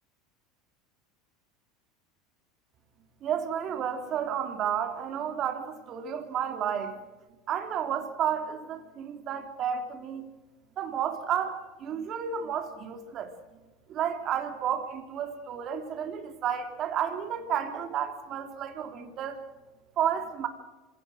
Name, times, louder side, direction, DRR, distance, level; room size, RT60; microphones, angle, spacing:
voice 1, 3.2-7.0 7.5-10.3 10.8-13.3 13.9-19.4 20.0-20.5, right 8 dB, 45° right, 7 dB, 3.3 m, -31 dB
26.5 x 17.5 x 6.5 m, 1.2 s
supercardioid pair, 115°, 0 cm